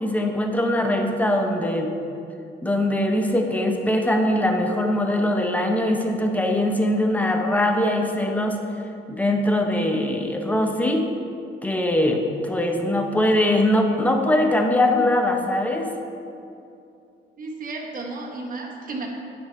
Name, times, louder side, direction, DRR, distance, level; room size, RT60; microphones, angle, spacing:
voice 1, 0.0-1.9 2.6-8.6 9.1-11.1 11.6-15.9, left 1 dB, 10° left, 3 dB, 0.8 m, -22 dB
voice 2, 17.4-19.1, right 3 dB, 45° right, 0 dB, 1.2 m, -33 dB
9.5 x 5.3 x 3.2 m, 2.6 s
cardioid pair, 90°, 20 cm